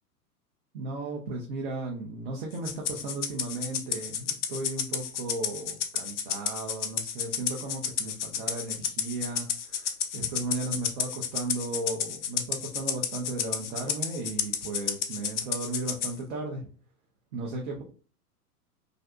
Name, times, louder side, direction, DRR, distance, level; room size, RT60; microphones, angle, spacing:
voice 1, 0.7-16.7 17.3-17.8, right 2 dB, 40° right, -1 dB, 0.5 m, -35 dB
Rattle (instrument), 2.6-16.1, left 8 dB, 50° left, 0.5 m, -31 dB
2.4 x 2.4 x 2.2 m, 0.39 s
figure-of-eight pair, 95°, 46 cm